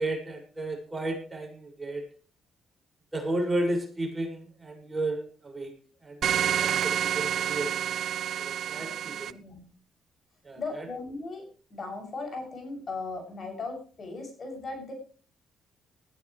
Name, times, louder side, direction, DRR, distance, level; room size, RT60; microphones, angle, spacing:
voice 1, 0.0-2.0 3.1-5.7 6.0-8.0 8.4-9.4 10.4-10.9, right 1 dB, 20° right, 2 dB, 6.1 m, -33 dB
sound 1, 6.2-9.3, right 9 dB, 65° right, 0.7 m, -28 dB
voice 2, 8.7-9.6 10.6-14.9, left 3 dB, 45° left, 4 dB, 7.3 m, -38 dB
19.0 x 14.0 x 3.3 m, 0.40 s
cardioid pair, 90°, 0 cm